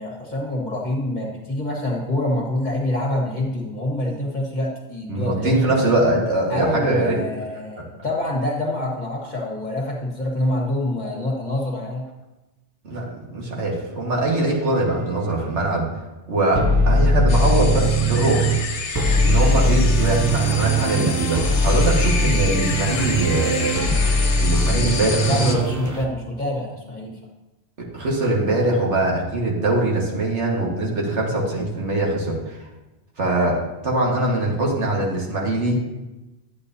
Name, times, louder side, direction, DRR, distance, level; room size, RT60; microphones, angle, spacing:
voice 1, 0.0-5.6 6.5-12.1 25.2-27.2, left 1 dB, 40° left, -1 dB, 1.7 m, -26 dB
voice 2, 5.1-7.2 12.8-13.1 13.3-15.9 16.3-18.5 19.2-23.8 24.4-25.6 27.9-32.7 33.2-35.8, right 2 dB, 85° right, -2 dB, 2.0 m, -22 dB
sound 1, 14.3-14.5 16.5-18.6 18.9-26.0, equal, 20° right, 0.5 m, -20 dB
sound 2, 17.3-25.6, left 5 dB, 80° left, 1.2 m, -29 dB
11.0 x 8.1 x 2.8 m, 1.0 s
omnidirectional pair, 1.2 m